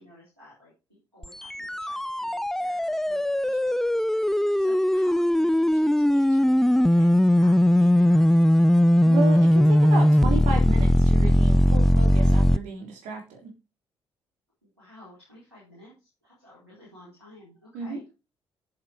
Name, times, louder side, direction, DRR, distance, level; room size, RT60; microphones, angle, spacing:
voice 1, 0.0-4.2 4.5-8.5 14.6-18.1, left 1 dB, 90° right, -6 dB, 4.4 m, -52 dB
sound 1, 1.2-12.6, left 1 dB, 5° left, 0.5 m, -20 dB
voice 2, 9.0-13.5 17.7-18.0, right 4 dB, 65° right, 1 dB, 3.6 m, -32 dB
9.3 x 7.6 x 4.5 m, 0.29 s
figure-of-eight pair, 45°, 13 cm